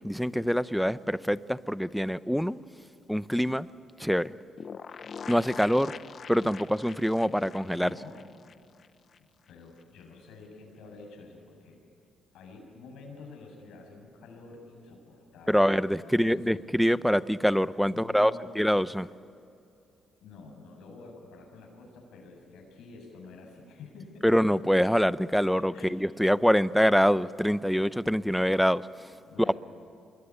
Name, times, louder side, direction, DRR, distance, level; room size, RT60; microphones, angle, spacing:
voice 1, 0.0-2.6 3.1-3.7 4.0-4.4 5.3-5.9 6.3-8.0 15.5-19.1 24.2-29.1, equal, ahead, 17 dB, 0.7 m, -25 dB
sound 1, 4.6-9.2 9.5-9.6 9.8-9.9, left 6 dB, 50° left, 0.8 m, -44 dB
voice 2, 7.6-8.3 9.5-11.8 12.3-16.6 17.8-18.5 20.2-24.2 25.7-25.9 27.6-27.8 29.2-29.6, left 3 dB, 85° left, 1 dB, 7.4 m, -49 dB
26.0 x 22.0 x 9.8 m, 2.6 s
cardioid pair, 90°, 0 cm